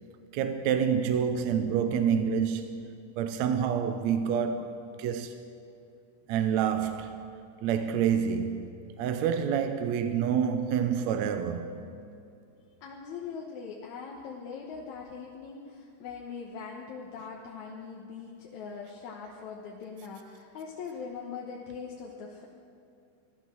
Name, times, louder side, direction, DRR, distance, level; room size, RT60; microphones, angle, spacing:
voice 1, 0.3-4.7 5.0-5.3 6.3-7.3 7.6-8.7 9.0-11.7, right 7 dB, 75° right, 1.7 m, -28 dB
voice 2, 12.8-22.5, left 5 dB, 70° left, 2.3 m, -41 dB
16.0 x 12.5 x 6.2 m
omnidirectional pair, 3.8 m